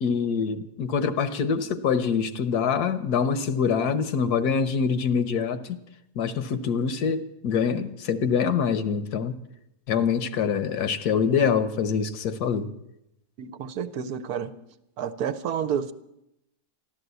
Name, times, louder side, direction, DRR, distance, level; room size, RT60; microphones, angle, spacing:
voice 1, 0.0-5.8 6.2-9.4 9.9-12.7, left 6 dB, 70° left, 12 dB, 1.4 m, -25 dB
voice 2, 13.4-14.5 15.0-15.9, right 8 dB, 70° right, 12 dB, 1.2 m, -30 dB
13.5 x 12.0 x 8.1 m, 0.83 s
omnidirectional pair, 1.7 m